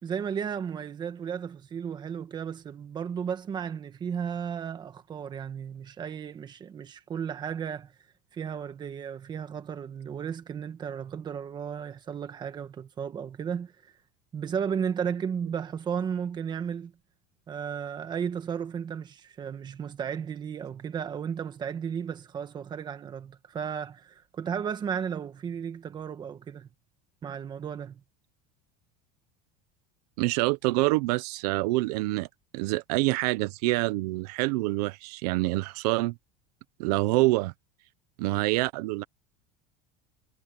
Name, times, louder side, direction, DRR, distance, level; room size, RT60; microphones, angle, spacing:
voice 1, 0.0-7.9 8.3-13.9 14.3-16.9 17.5-26.7 27.2-28.0, right 7 dB, 20° right, 1.5 m, -34 dB
voice 2, 30.2-32.3 32.5-36.1 36.8-37.5 38.2-39.0, right 21 dB, 75° right, 0.9 m, -26 dB
cardioid pair, 170°, 21 cm